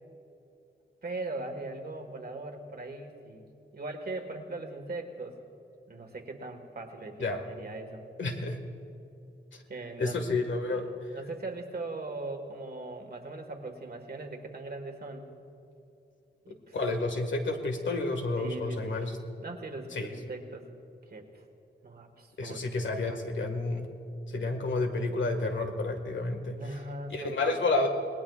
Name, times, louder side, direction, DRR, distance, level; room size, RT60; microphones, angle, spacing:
voice 1, 1.0-3.5 3.7-5.4 5.9-8.0 9.7-10.3 10.7-15.3 16.4-16.8 18.4-19.1 19.4-20.7 21.1-21.4 21.8-23.2 26.5-27.5, right 2 dB, 55° right, 4 dB, 1.6 m, -40 dB
voice 2, 8.2-8.6 9.5-9.6 10.0-10.9 16.5-19.1 19.9-20.1 22.4-23.9 24.3-26.6 27.1-27.9, left 3 dB, 80° left, 4 dB, 1.7 m, -30 dB
27.5 x 20.0 x 2.4 m, 2.6 s
wide cardioid pair, 150°, 19 cm